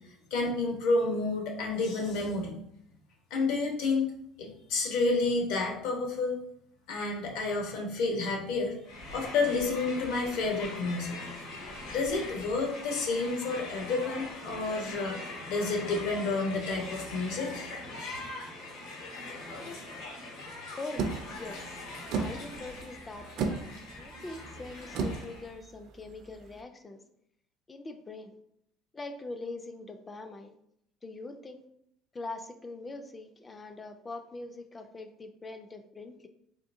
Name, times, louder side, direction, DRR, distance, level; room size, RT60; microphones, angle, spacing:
voice 1, 0.3-2.5 3.3-6.4 6.9-8.7 9.1-11.2 11.9-15.2 15.5-17.7 18.0-18.3, left 3 dB, 70° left, 1 dB, 0.9 m, -30 dB
Crowd, 8.8-25.5, left 2 dB, 85° left, 1.5 m, -42 dB
voice 2, 20.8-21.8 22.2-23.5 23.9-27.0 27.7-28.3 28.9-30.6 31.0-31.6 32.1-36.3, left 2 dB, 15° left, 7 dB, 0.3 m, -43 dB
sound 1, 21.0-26.6, right 4 dB, 50° right, 0.4 m, -36 dB
3.7 x 3.4 x 2.6 m, 0.72 s
cardioid pair, 170°, 0 cm